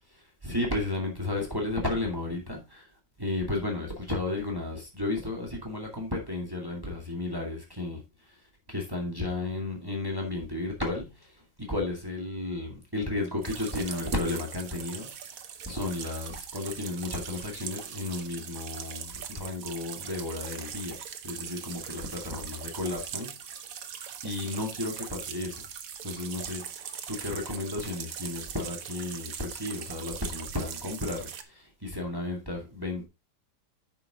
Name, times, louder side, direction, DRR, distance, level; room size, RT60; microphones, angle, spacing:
voice 1, 0.1-2.9 3.2-15.3 15.6-23.4 24.2-25.6 26.0-26.8 27.1-33.1, left 2 dB, 10° right, 2.1 m, -33 dB
sound 1, 13.4-31.4, right 8 dB, 55° right, 1.2 m, -41 dB
9.1 x 5.8 x 3.6 m
omnidirectional pair, 2.0 m